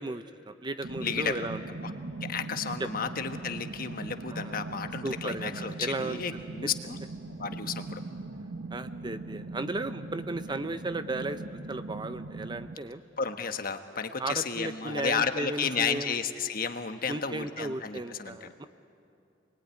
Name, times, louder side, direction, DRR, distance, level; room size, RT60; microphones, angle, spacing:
voice 1, 0.0-1.6 2.8-2.9 4.3-4.6 5.0-6.2 8.7-13.0 14.2-16.2 17.1-18.7, right 2 dB, 25° right, 11 dB, 0.6 m, -35 dB
sound 1, 0.8-12.8, right 3 dB, 90° right, 1.2 m, -40 dB
voice 2, 1.0-1.5 1.8-1.9 2.2-7.0 7.4-8.0 10.6-10.7 13.2-18.5, left 6 dB, 50° left, 7 dB, 1.3 m, -32 dB
27.5 x 21.0 x 9.6 m, 2.6 s
head